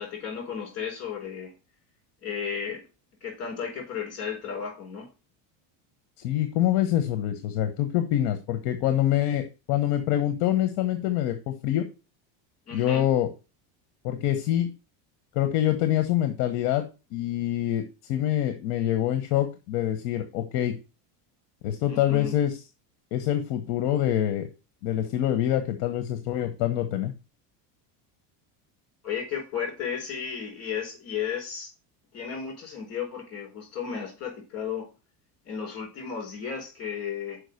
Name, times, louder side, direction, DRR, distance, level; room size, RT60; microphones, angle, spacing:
voice 1, 0.0-1.5 2.2-2.8 3.2-5.1 12.7-13.0 21.9-22.3 29.0-31.7 32.1-34.9 35.4-37.4, left 7 dB, 30° left, 1 dB, 4.9 m, -34 dB
voice 2, 6.2-11.8 12.7-13.3 14.0-14.7 15.3-16.8 17.1-20.7 21.6-22.6 23.1-24.5 24.8-27.1, left 12 dB, 60° left, 8 dB, 1.2 m, -25 dB
6.4 x 5.1 x 6.4 m, 0.31 s
cardioid pair, 160°, 46 cm